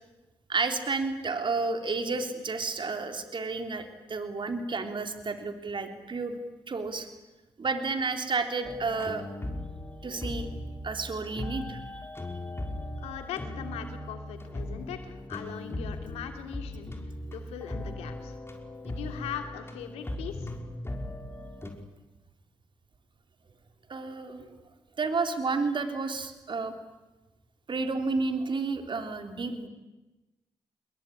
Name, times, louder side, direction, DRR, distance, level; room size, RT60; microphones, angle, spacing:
voice 1, 0.5-6.4 6.7-7.1 7.6-9.3 10.0-10.5 10.8-12.4 23.9-24.5 25.0-26.7 27.7-29.7, right 4 dB, 50° right, 6 dB, 3.6 m, -31 dB
sound 1, 8.6-21.7, left 1 dB, 25° left, 5.8 m, -38 dB
voice 2, 13.0-16.9 17.3-18.4 18.8-20.5, left 8 dB, 85° left, 6 dB, 2.8 m, -40 dB
28.0 x 21.5 x 9.9 m, 1.1 s
hypercardioid pair, 40°, 10 cm